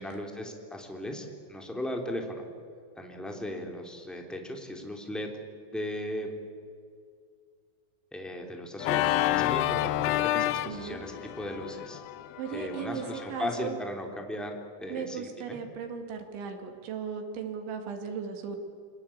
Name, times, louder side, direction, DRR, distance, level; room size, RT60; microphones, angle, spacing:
voice 1, 0.0-2.4 2.9-5.3 5.7-6.3 8.1-9.1 9.3-12.0 12.5-15.6, left 1 dB, ahead, 2 dB, 2.5 m, -37 dB
Organ, 8.8-13.6, left 14 dB, 85° left, 2.1 m, -30 dB
voice 2, 10.4-11.0 12.4-13.8 14.9-18.6, right 6 dB, 85° right, 4 dB, 4.7 m, -37 dB
28.0 x 21.5 x 8.8 m, 2.3 s
omnidirectional pair, 5.2 m